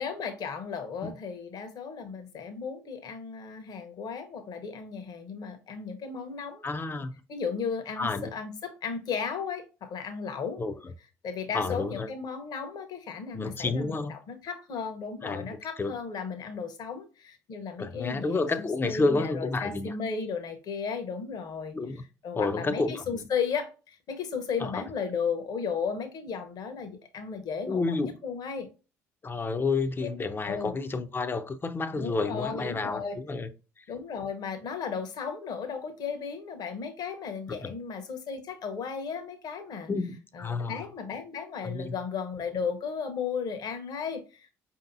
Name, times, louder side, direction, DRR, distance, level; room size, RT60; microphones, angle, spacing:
voice 1, 0.0-6.6 7.3-10.6 11.2-21.8 22.2-28.7 30.0-30.1 30.4-30.8 31.9-33.2 33.9-39.9 40.3-44.5, left 6 dB, 55° left, 1.0 m, -35 dB
voice 2, 6.6-7.1 8.0-8.3 10.6-10.7 11.5-12.1 13.3-14.1 15.2-15.9 17.8-19.9 21.7-22.0 22.4-23.2 24.6-24.8 27.7-28.1 29.2-33.5 37.6-37.7 39.9-40.8 41.6-41.9, left 3 dB, 25° left, 0.6 m, -30 dB
5.1 x 2.8 x 2.7 m
hypercardioid pair, 55°, 8 cm